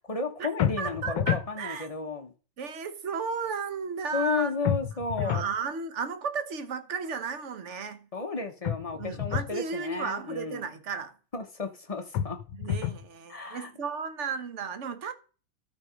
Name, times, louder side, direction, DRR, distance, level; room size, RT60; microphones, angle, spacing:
voice 1, 0.1-2.3 4.1-5.4 8.1-10.7 11.3-12.4 13.3-13.7, left 4 dB, 55° left, 0.3 m, -33 dB
sound 1, 0.6-1.5 4.7-5.5 8.6-9.5 12.1-13.1, left 10 dB, 75° left, 1.4 m, -29 dB
voice 2, 0.8-1.9 2.6-4.5 5.2-8.1 9.0-11.1 12.5-15.1, right 5 dB, 50° right, 0.9 m, -34 dB
13.0 x 5.1 x 5.1 m
omnidirectional pair, 2.4 m